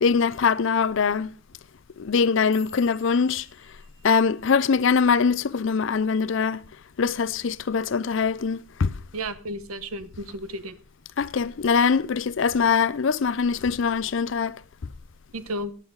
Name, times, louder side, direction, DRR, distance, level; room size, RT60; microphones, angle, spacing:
voice 1, 0.0-1.3 2.0-3.5 4.0-6.6 7.0-8.9 11.2-14.6, left 5 dB, 65° left, 0.5 m, -22 dB
sound 1, 2.3-6.5 6.8-7.2 7.6-8.0 8.4-8.6 9.2-9.6 10.0-10.8 11.2-11.6 12.4-12.5, left 4 dB, 20° left, 4.9 m, -51 dB
voice 2, 9.1-10.7 15.3-15.7, right 1 dB, 90° right, 1.0 m, -33 dB
15.0 x 9.9 x 3.9 m
head